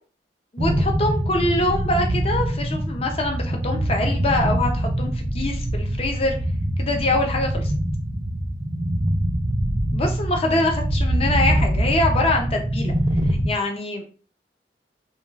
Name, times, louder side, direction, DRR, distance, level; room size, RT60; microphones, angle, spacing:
voice 1, 0.5-6.4 6.8-7.7 9.9-12.9 13.4-14.0, left 2 dB, 35° left, 3 dB, 0.5 m, -24 dB
sound 1, 0.6-13.5, right 1 dB, 25° right, 0.3 m, -24 dB
2.2 x 2.2 x 3.2 m, 0.40 s
head